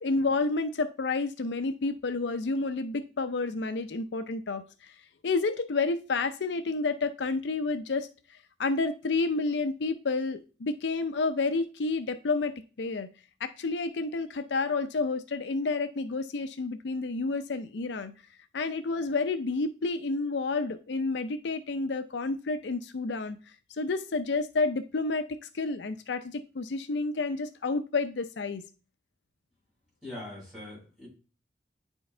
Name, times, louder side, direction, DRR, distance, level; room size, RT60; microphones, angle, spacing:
voice 1, 0.0-4.9 5.2-8.1 8.6-13.1 13.4-18.1 18.5-23.4 23.8-28.6, left 3 dB, 80° left, 10 dB, 0.5 m, -30 dB
voice 2, 30.0-31.1, left 1 dB, 5° right, -6 dB, 4.5 m, -42 dB
9.3 x 4.6 x 3.3 m, 0.34 s
head